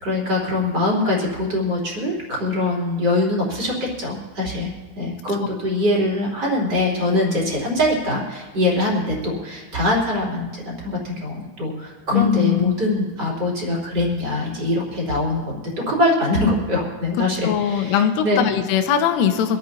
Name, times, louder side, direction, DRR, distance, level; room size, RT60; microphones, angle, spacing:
voice 1, 0.0-4.7 5.0-18.4, left 1 dB, 25° right, -4 dB, 3.4 m, -23 dB
voice 2, 12.1-12.8 17.4-19.6, left 9 dB, 80° left, 6 dB, 3.5 m, -20 dB
25.5 x 13.5 x 2.9 m, 1.4 s
omnidirectional pair, 5.6 m